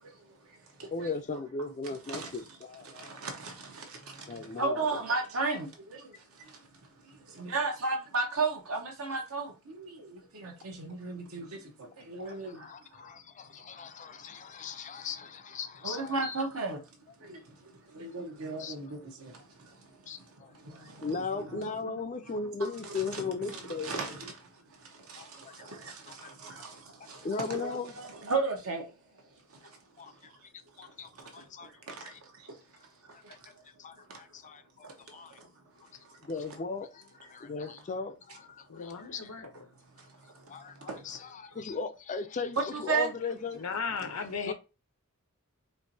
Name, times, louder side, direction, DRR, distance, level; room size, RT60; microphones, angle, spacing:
voice 1, 0.9-2.9 4.3-5.0 12.3-16.4 18.6-18.7 20.1-20.5 21.0-24.0 25.2-25.7 26.1-26.6 27.2-27.9 30.0-30.1 30.8-31.7 32.0-32.2 33.8-35.3 36.2-39.3 40.5-43.6 44.4-44.5, left 4 dB, 35° left, 0.4 m, -38 dB
voice 2, 2.8-6.6 7.0-12.7 15.8-16.8 17.2-19.8 20.5-28.9 29.6-29.7 30.8-30.9 31.2-32.5 33.1-33.3 34.1-34.2 34.8-35.5 40.3-41.2 42.7-43.1 44.0-44.1, right 3 dB, 65° right, 1.0 m, -36 dB
voice 3, 38.7-39.5 43.5-44.5, left 5 dB, 85° left, 0.7 m, -36 dB
4.4 x 2.6 x 2.7 m
head